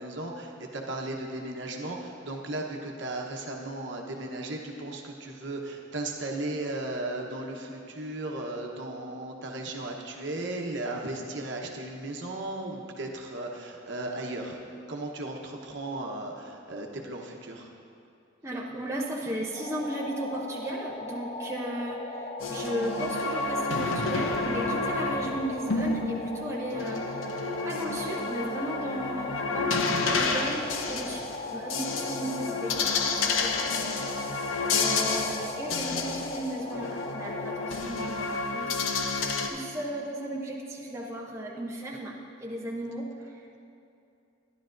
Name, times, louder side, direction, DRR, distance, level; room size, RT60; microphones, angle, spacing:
voice 1, 0.0-14.6 14.9-17.7, right 2 dB, 60° right, 1 dB, 1.0 m, -36 dB
voice 2, 18.4-33.8 34.6-43.6, right 1 dB, 15° right, -3 dB, 0.7 m, -36 dB
sound 1, 19.5-37.8, left 1 dB, 30° left, 0.5 m, -38 dB
sound 2, 22.4-39.5, left 4 dB, 85° left, 0.7 m, -30 dB
13.0 x 11.0 x 2.6 m, 2.6 s
head